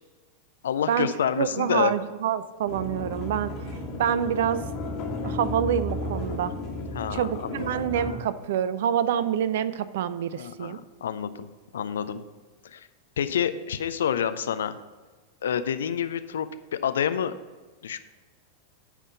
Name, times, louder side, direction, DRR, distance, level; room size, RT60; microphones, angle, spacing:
voice 1, 0.6-1.9 6.9-7.7 10.4-11.5 11.7-12.2 12.6-12.9 13.2-14.8 15.4-16.5 16.7-17.3 17.8-18.0, left 8 dB, 65° left, 12 dB, 0.4 m, -28 dB
voice 2, 1.4-3.5 4.0-4.6 5.2-6.5 7.1-10.8, right 9 dB, 55° right, 15 dB, 0.4 m, -26 dB
sound 1, 2.7-8.2, left 2 dB, 35° left, 1.4 m, -33 dB
9.0 x 3.6 x 6.8 m, 1.3 s
figure-of-eight pair, 90°, 0 cm